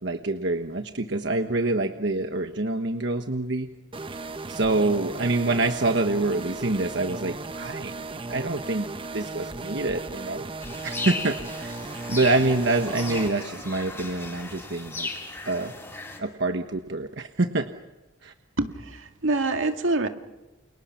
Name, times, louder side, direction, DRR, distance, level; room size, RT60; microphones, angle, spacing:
voice 1, 0.0-3.7 4.5-7.9 8.3-8.9 9.1-10.4 10.8-11.8 12.1-15.1 15.4-15.7 16.2-17.7 18.2-18.3, right 2 dB, 65° right, 6 dB, 1.2 m, -26 dB
sound 1, 3.9-13.3, right 3 dB, 25° right, 0.8 m, -36 dB
sound 2, 10.6-16.2, left 2 dB, 15° left, 7.0 m, -36 dB
voice 2, 18.6-20.1, right 2 dB, 80° right, 5 dB, 2.1 m, -26 dB
29.5 x 29.0 x 5.8 m, 1.1 s
head